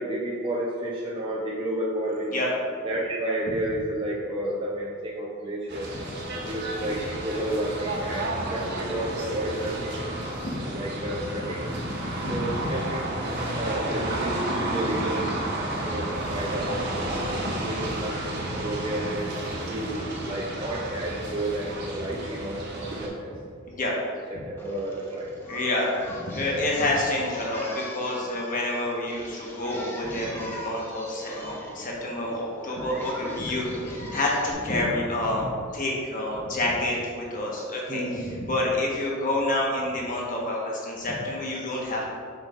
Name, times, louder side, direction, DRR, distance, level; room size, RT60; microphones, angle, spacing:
voice 1, 0.0-2.4 2.8-5.9 6.3-10.1 10.7-11.7 12.3-15.3 15.6-16.7 17.5-19.3 19.6-23.3 24.6-25.6 28.9-29.0 29.4-29.5 29.8-30.3 31.1-31.2 31.5-31.9 37.9-38.4, right 1 dB, 25° right, -5 dB, 0.6 m, -31 dB
sound 1, 5.7-23.1, right 1 dB, 55° right, 1.2 m, -31 dB
voice 2, 11.7-12.7 23.7-23.9 25.5-35.5 35.7-42.1, left 1 dB, 40° left, -3 dB, 1.2 m, -28 dB
Singing, 24.6-34.5, left 1 dB, 10° left, 0.9 m, -41 dB
7.1 x 6.1 x 2.5 m, 2.2 s
head